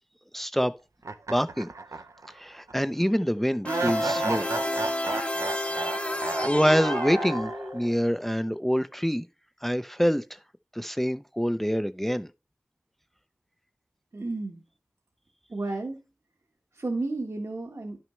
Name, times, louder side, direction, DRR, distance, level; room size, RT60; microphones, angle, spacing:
voice 1, 0.3-0.7 1.3-1.7 2.3-4.5 6.3-9.2 9.6-10.2 10.7-12.3, equal, 5° left, 0.4 m, -26 dB
sound 1, 1.0-2.3 2.7-2.8 3.6-7.9, right 3 dB, 80° right, 0.6 m, -33 dB
sound 2, 3.6-8.0, left 1 dB, 25° left, 0.8 m, -30 dB
voice 2, 14.1-14.6 15.5-16.0 16.7-18.0, right 2 dB, 65° right, 1.3 m, -32 dB
10.5 x 6.1 x 3.1 m
wide cardioid pair, 50°, 5 cm